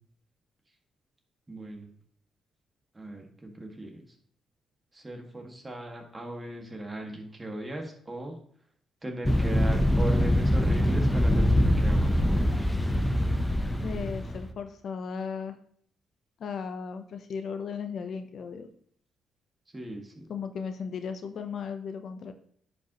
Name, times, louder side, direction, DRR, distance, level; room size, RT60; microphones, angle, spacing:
voice 1, 1.5-1.9 2.9-4.0 4.9-8.4 9.0-12.8 19.7-20.3, right 1 dB, 20° right, 2 dB, 1.9 m, -38 dB
sound 1, 9.2-14.5, equal, 10° left, 0.8 m, -24 dB
voice 2, 13.8-15.6 16.4-18.7 20.3-22.3, left 6 dB, 60° left, 8 dB, 0.7 m, -36 dB
10.5 x 5.4 x 3.0 m, 0.62 s
cardioid pair, 90°, 0 cm